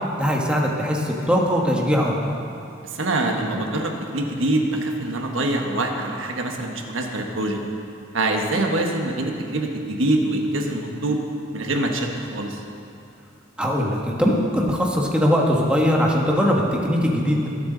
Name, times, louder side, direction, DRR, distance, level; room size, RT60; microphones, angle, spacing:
voice 1, 0.2-2.3 13.6-17.5, equal, 5° right, -2 dB, 1.3 m, -21 dB
voice 2, 2.8-7.6 8.1-11.2 11.5-12.6, right 2 dB, 75° right, 2 dB, 1.4 m, -24 dB
22.0 x 8.0 x 4.0 m, 2.6 s
head